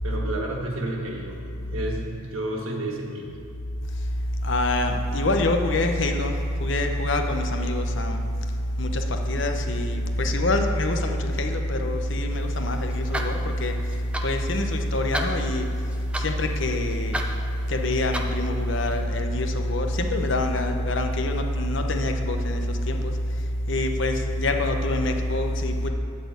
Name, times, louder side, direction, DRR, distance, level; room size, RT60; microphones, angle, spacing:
voice 1, 0.0-1.4 1.7-3.3, right 1 dB, 90° right, 0 dB, 1.6 m, -31 dB
voice 2, 4.4-8.2 8.8-13.8 14.2-15.7 16.2-17.1 17.7-23.1 23.7-25.9, left 1 dB, 65° left, 4 dB, 0.8 m, -25 dB
sound 1, 12.3-19.0, right 1 dB, 5° right, 0.5 m, -36 dB
12.0 x 4.3 x 8.2 m, 2.5 s
head